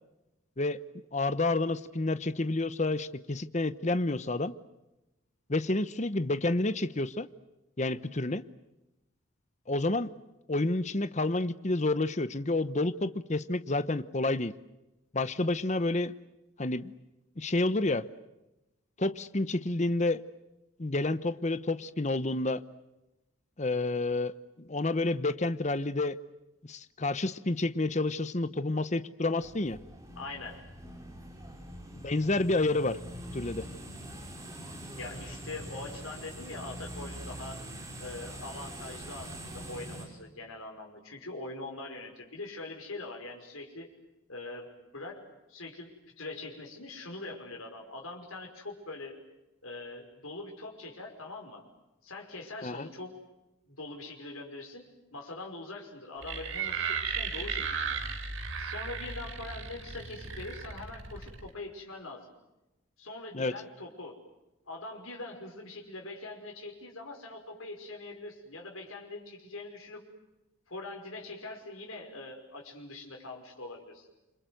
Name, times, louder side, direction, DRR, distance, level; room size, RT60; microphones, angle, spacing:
voice 1, 1.1-4.5 5.5-7.3 7.8-8.4 9.7-10.1 10.5-14.5 15.1-16.1 16.6-16.9 17.4-18.1 19.0-20.2 20.8-22.6 23.6-26.2 26.7-29.8 31.9-33.0 33.3-33.7 52.6-52.9 63.3-63.5, left 2 dB, 35° left, 14 dB, 0.9 m, -29 dB
sound 1, 29.4-40.1, right 1 dB, 15° right, 5.3 m, -43 dB
voice 2, 30.2-30.6 34.9-37.6 38.0-43.9 44.3-49.2 49.6-51.6 52.0-53.2 53.7-58.0 58.6-62.3 63.0-64.2 64.7-70.0 70.7-74.1, left 2 dB, 90° left, 1 dB, 5.5 m, -43 dB
sound 2, 56.2-61.5, right 5 dB, 75° right, 3.2 m, -35 dB
28.0 x 26.0 x 7.9 m, 0.98 s
head